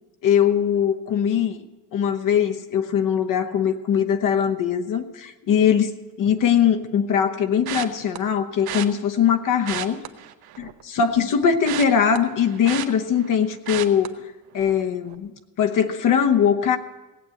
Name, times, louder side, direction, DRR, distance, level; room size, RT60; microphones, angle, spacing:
voice 1, 0.2-1.6 1.9-10.0 10.6-14.2 14.5-15.3 15.6-16.8, left 8 dB, 50° left, 6 dB, 1.0 m, -21 dB
sound 1, 7.7-8.2 8.7-8.9 9.5-10.8 11.1-13.3 13.7-14.1 14.5-14.8 15.1-15.2, right 12 dB, 70° right, 1.0 m, -32 dB
17.0 x 8.2 x 7.8 m, 1.1 s
cardioid pair, 135°, 39 cm